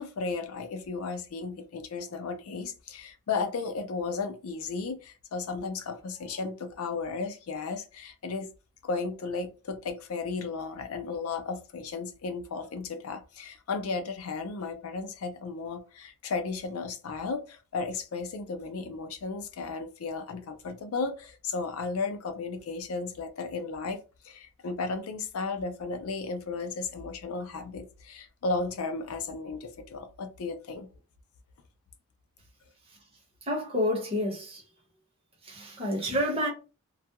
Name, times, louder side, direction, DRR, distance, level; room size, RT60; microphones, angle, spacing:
voice 1, 0.0-8.5 8.8-24.0 24.2-30.9, left 4 dB, 75° left, 0.4 m, -34 dB
voice 2, 33.5-34.6 35.4-36.5, left 1 dB, 25° right, 1.0 m, -29 dB
2.3 x 2.2 x 2.8 m
head